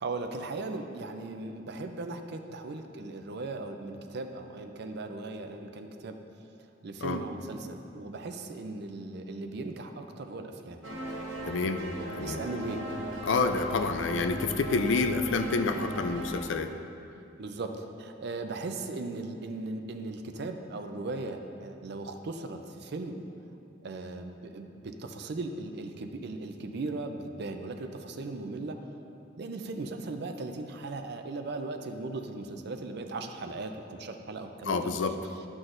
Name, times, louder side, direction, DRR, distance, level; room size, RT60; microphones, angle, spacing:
voice 1, 0.0-6.2 6.8-10.8 11.8-12.8 17.4-23.2 23.8-28.8 29.4-34.9, right 2 dB, 60° right, 6 dB, 0.5 m, -38 dB
sound 1, 10.8-16.4, equal, 80° right, 0.9 m, -37 dB
voice 2, 11.5-11.8 12.2-12.4 13.2-16.7 34.7-35.1, left 3 dB, 70° left, 8 dB, 0.4 m, -28 dB
11.0 x 6.1 x 2.6 m, 2.7 s
head